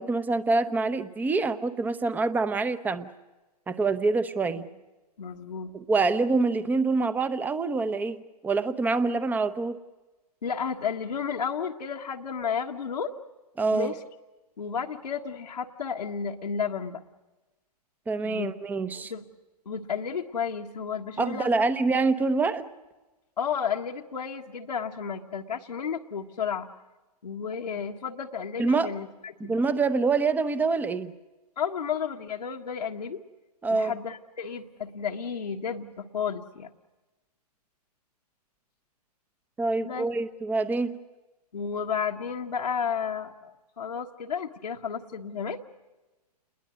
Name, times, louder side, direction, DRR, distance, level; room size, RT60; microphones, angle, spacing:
voice 1, 0.0-3.1 3.7-4.6 5.7-8.2 8.4-9.8 13.6-13.9 18.1-19.1 21.2-22.6 28.6-28.9 29.4-31.1 33.6-33.9 39.6-40.9, right 3 dB, 10° right, 14 dB, 0.8 m, -26 dB
voice 2, 5.2-5.7 10.4-13.1 13.7-14.0 14.6-17.0 18.2-18.5 18.9-19.2 19.6-21.7 23.4-26.7 27.2-29.6 31.6-33.2 33.7-36.7 39.8-40.1 41.5-45.6, left 6 dB, 85° left, 0 dB, 1.5 m, -32 dB
29.0 x 21.5 x 6.3 m, 1.1 s
hypercardioid pair, 135°, 21 cm